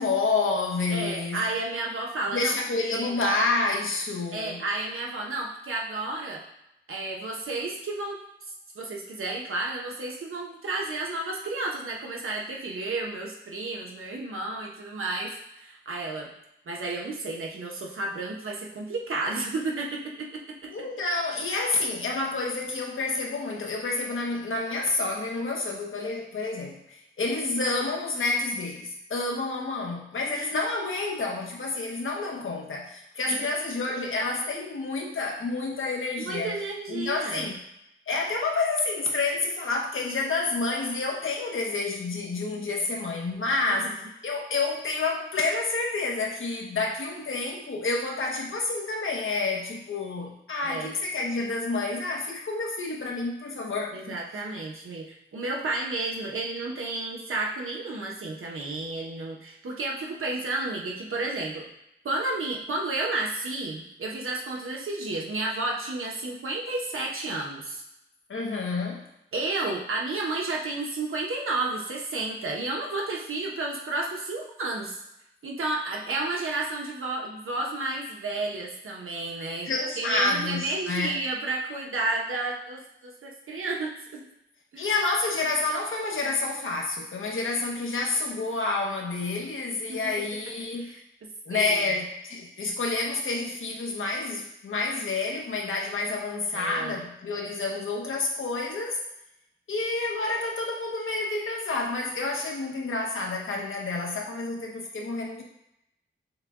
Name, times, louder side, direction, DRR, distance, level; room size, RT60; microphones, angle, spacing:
voice 1, 0.0-1.4 2.3-4.6 20.7-36.6 36.9-37.6 38.1-54.2 68.3-69.1 79.6-81.1 84.8-91.0 91.5-99.0 99.7-105.4, left 3 dB, 70° left, -1 dB, 0.9 m, -29 dB
voice 2, 0.9-2.5 2.8-3.1 4.3-6.4 6.9-8.2 8.7-16.3 16.7-20.3 33.3-33.4 36.2-37.5 43.7-44.1 50.6-50.9 53.9-61.6 62.0-67.8 69.3-75.0 75.4-84.2 84.7-84.9 89.9-90.1 90.8-91.8 96.5-97.0, right 2 dB, 75° right, -1 dB, 0.9 m, -32 dB
6.4 x 2.3 x 3.6 m, 0.83 s
wide cardioid pair, 120°, 21 cm